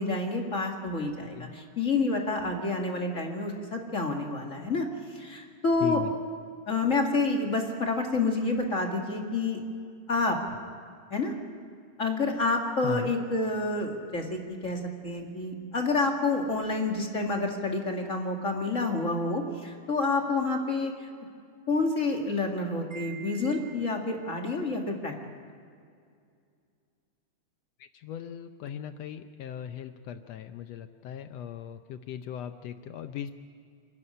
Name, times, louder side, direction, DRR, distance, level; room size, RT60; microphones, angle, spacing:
voice 1, 0.0-4.9 5.1-6.0 6.7-9.6 10.1-10.4 11.1-11.3 12.0-21.1 21.7-25.1, left 3 dB, 30° left, 2 dB, 1.9 m, -28 dB
voice 2, 5.8-6.1 12.8-13.1 27.8-33.3, left 9 dB, 75° left, 9 dB, 1.6 m, -38 dB
Wind chime, 22.9-24.3, right 9 dB, 30° right, 2.1 m, -47 dB
27.5 x 11.0 x 10.0 m, 2.3 s
omnidirectional pair, 3.4 m